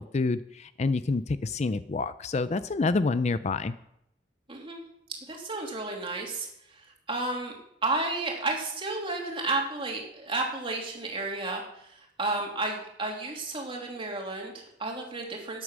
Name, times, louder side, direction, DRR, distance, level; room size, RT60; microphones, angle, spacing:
voice 1, 0.0-3.7, left 3 dB, 40° left, 14 dB, 0.4 m, -28 dB
voice 2, 4.5-4.8 5.3-15.6, right 2 dB, 30° right, 0 dB, 2.9 m, -32 dB
13.0 x 9.7 x 6.2 m, 0.78 s
head